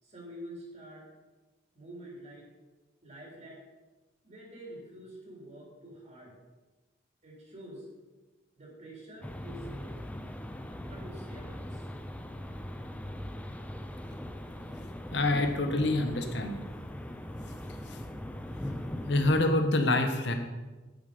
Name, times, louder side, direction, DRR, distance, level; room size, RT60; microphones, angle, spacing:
voice 1, 0.0-1.1 1.7-2.5 3.0-3.6 4.2-6.3 7.2-7.9 8.6-10.0 10.9-11.9, right 1 dB, 40° right, -2 dB, 3.7 m, -47 dB
sound 1, 9.2-19.4, left 1 dB, 10° left, 0.6 m, -40 dB
voice 2, 15.1-16.6 17.9-18.0 19.1-20.3, left 2 dB, 70° left, 5 dB, 1.5 m, -26 dB
10.5 x 9.3 x 5.3 m, 1.2 s
head